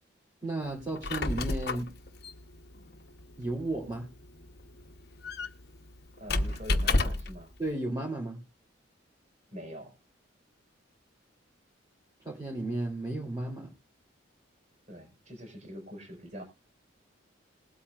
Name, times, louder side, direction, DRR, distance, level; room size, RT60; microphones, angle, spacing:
voice 1, 0.4-1.9 3.4-4.1 7.6-8.4 12.2-13.7, right 2 dB, 20° right, -2 dB, 3.0 m, -33 dB
Squeak, 0.8-7.4, left 2 dB, 55° left, 1.0 m, -32 dB
voice 2, 6.2-7.5 9.5-9.9 14.9-16.4, equal, 40° right, 3 dB, 5.1 m, -44 dB
20.5 x 8.4 x 2.5 m, 0.26 s
head